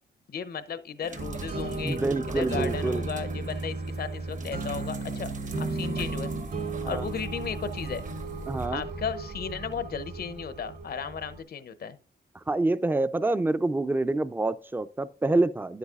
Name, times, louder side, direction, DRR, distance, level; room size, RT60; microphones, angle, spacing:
voice 1, 0.3-2.0 2.3-5.3 5.6-6.3 6.9-8.0 8.7-12.0, left 7 dB, 60° left, 0.6 m, -35 dB
sound 1, 1.0-8.7 9.7-9.8, right 3 dB, 45° right, 1.0 m, -46 dB
sound 2, 1.2-11.4, right 3 dB, 65° right, 3.7 m, -34 dB
voice 2, 1.8-3.1 6.8-7.0 8.5-8.8 12.5-15.8, right 2 dB, 10° right, 0.4 m, -27 dB
9.8 x 8.0 x 2.4 m
cardioid pair, 85°, 18 cm